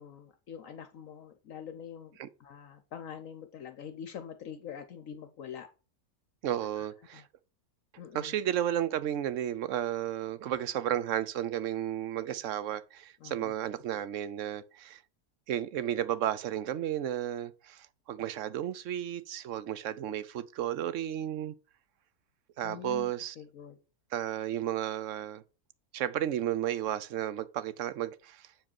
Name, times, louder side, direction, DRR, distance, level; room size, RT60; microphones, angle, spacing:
voice 1, 0.0-5.7 6.8-6.9 7.1-7.2 8.0-8.4 13.2-13.5 22.6-23.8, left 8 dB, 65° left, 1.0 m, -45 dB
voice 2, 6.4-7.3 8.1-15.0 15.5-21.5 22.6-23.3 24.1-25.4 25.9-28.5, right 11 dB, 65° right, 0.9 m, -33 dB
7.5 x 4.9 x 4.4 m
omnidirectional pair, 1.6 m